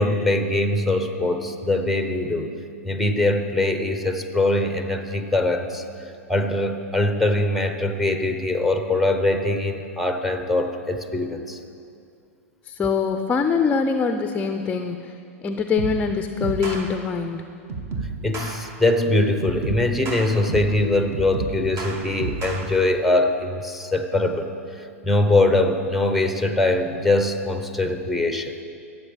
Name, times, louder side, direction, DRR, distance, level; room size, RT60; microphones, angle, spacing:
voice 1, 0.0-2.5 2.8-5.8 6.3-11.6 18.2-24.5 24.7-28.5, left 2 dB, ahead, 6 dB, 1.1 m, -22 dB
voice 2, 12.7-15.1 15.4-17.5, left 5 dB, 20° left, 7 dB, 0.6 m, -23 dB
sound 1, 15.8-16.1 16.4-16.9 17.7-18.6 19.4-20.8 21.1-22.6, right 3 dB, 35° right, 1.9 m, -30 dB
13.0 x 8.0 x 7.4 m, 2.5 s
hypercardioid pair, 110°, 8 cm